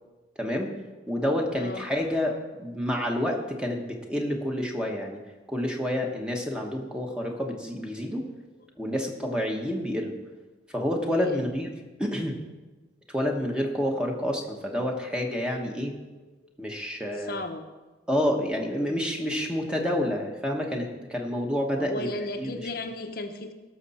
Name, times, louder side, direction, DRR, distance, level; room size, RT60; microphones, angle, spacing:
voice 1, 0.4-0.7 1.1-5.2 5.5-8.2 8.8-10.1 10.7-11.7 12.0-12.4 13.1-15.9 16.6-17.3 18.1-22.1 22.4-22.6, equal, 5° right, 1 dB, 1.1 m, -28 dB
voice 2, 1.5-1.9 11.1-11.5 17.2-17.7 21.8-23.5, left 2 dB, 55° left, 5 dB, 0.8 m, -34 dB
17.5 x 6.6 x 4.2 m, 1.2 s
head